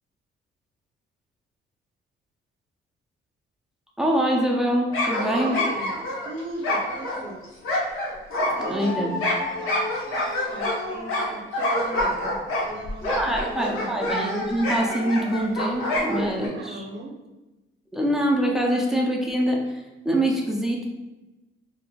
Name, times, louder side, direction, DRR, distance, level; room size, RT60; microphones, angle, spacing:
voice 1, 4.0-5.6 8.6-9.3 13.0-16.8 17.9-19.7 20.0-20.8, right 1 dB, ahead, -1 dB, 0.4 m, -24 dB
sound 1, 4.9-16.5, left 1 dB, 85° left, 0.8 m, -27 dB
voice 2, 5.3-7.4 8.5-12.4 12.6-14.2 16.5-17.1, right 2 dB, 60° right, 0 dB, 0.7 m, -38 dB
4.0 x 2.6 x 2.2 m, 1.1 s
cardioid pair, 150°, 21 cm